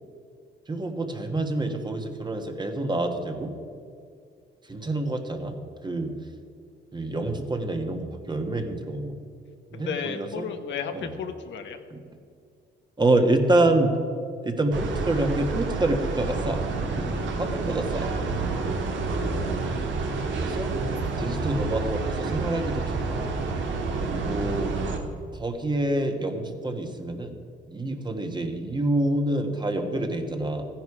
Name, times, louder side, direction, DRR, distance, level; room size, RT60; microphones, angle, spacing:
voice 1, 0.7-3.5 4.6-6.1 6.9-9.1 9.7-10.5 10.9-11.1 11.9-12.0 13.0-14.0 14.4-16.6 17.0-17.1 17.4-18.1 20.3-20.7 21.2-23.3 24.1-24.7 25.3-27.4 27.7-30.7, right 2 dB, 20° right, 5 dB, 1.6 m, -27 dB
voice 2, 9.7-11.8, left 6 dB, 70° left, 6 dB, 1.1 m, -33 dB
sound 1, 14.7-25.0, right 3 dB, 70° right, 1.7 m, -29 dB
14.5 x 10.5 x 4.9 m, 2.3 s
cardioid pair, 90°, 20 cm